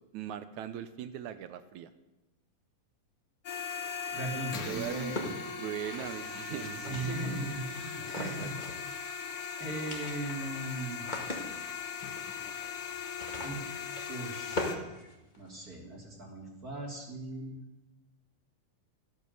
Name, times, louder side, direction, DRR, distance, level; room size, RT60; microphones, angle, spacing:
voice 1, 0.1-1.9 4.7-5.1 5.5-7.6 8.1-8.5, right 10 dB, 75° right, 11 dB, 1.8 m, -40 dB
sound 1, 3.4-14.7, left 6 dB, 55° left, 1.5 m, -39 dB
voice 2, 4.1-5.3 6.5-8.5 9.6-11.0 12.5-12.6 13.4-13.6 14.1-15.1 15.4-17.6, right 2 dB, 25° right, -1 dB, 3.1 m, -39 dB
sound 2, 4.9-7.4 8.0-8.9 9.2-9.3 9.6-15.7, left 1 dB, 20° left, 1.4 m, -41 dB
13.5 x 13.5 x 6.9 m, 0.99 s
omnidirectional pair, 4.0 m